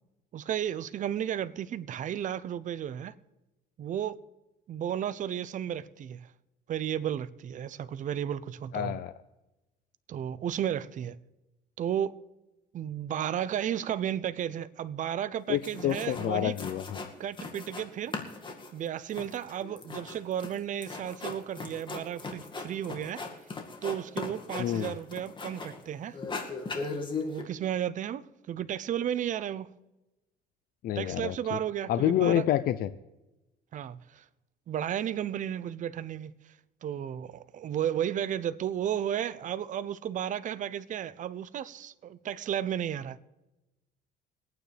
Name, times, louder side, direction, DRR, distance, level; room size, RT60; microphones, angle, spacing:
voice 1, 0.3-3.1 3.8-4.2 4.7-6.3 6.7-9.0 10.1-11.2 11.8-12.2 12.7-16.6 17.2-18.4 18.7-23.3 23.8-26.2 27.2-29.7 30.9-32.4 33.7-34.2 34.7-36.5 36.8-43.2, right 10 dB, 50° right, 0.7 m, -33 dB
voice 2, 8.7-9.1 15.5-17.1 24.6-24.9 30.8-31.6 31.9-32.9, left 12 dB, 65° left, 0.6 m, -28 dB
sound 1, 15.4-15.5 15.6-16.3 16.6-17.9 18.1-25.8 26.1-27.4, left 3 dB, 30° left, 2.1 m, -38 dB
23.0 x 9.2 x 3.4 m
cardioid pair, 110°, 17 cm